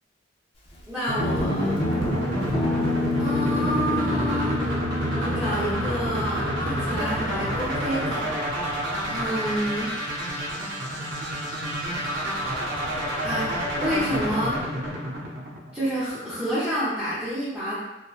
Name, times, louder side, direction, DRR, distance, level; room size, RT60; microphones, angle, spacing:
voice 1, 0.9-1.8 3.2-4.6 5.2-8.3 9.1-9.9 12.9-14.6 15.7-17.7, equal, 10° right, -14 dB, 0.7 m, -29 dB
sound 1, 1.1-16.0, equal, 65° right, 0.6 m, -29 dB
Guitar, 1.2-7.8, left 1 dB, 30° left, 0.4 m, -28 dB
2.9 x 2.2 x 2.3 m, 1.0 s
head